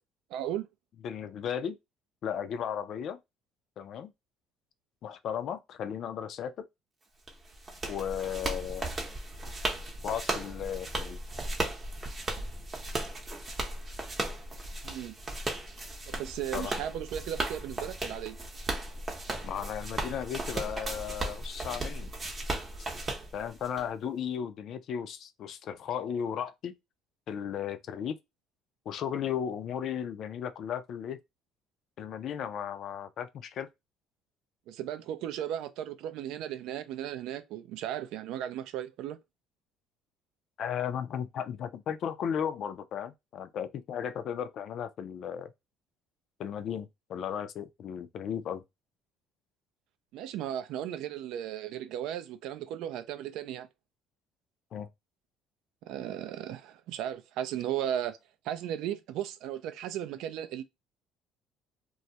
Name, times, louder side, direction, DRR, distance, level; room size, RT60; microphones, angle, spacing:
voice 1, 0.3-0.7 14.8-15.1 16.1-18.4 34.7-39.2 50.1-53.7 55.9-58.2 58.4-60.6, right 11 dB, 75° right, 0.3 m, -36 dB
voice 2, 1.0-1.8 2.2-3.2 3.8-4.1 5.0-6.7 7.9-8.9 10.0-11.2 16.5-16.7 19.4-22.1 23.3-26.8 27.3-28.2 28.9-31.2 32.0-33.7 40.6-45.5 46.4-48.6 54.7-54.9, left 8 dB, 55° left, 0.3 m, -35 dB
sound 1, 7.3-23.8, right 2 dB, 25° right, 0.7 m, -36 dB
2.3 x 2.1 x 2.7 m
cardioid pair, 105°, 0 cm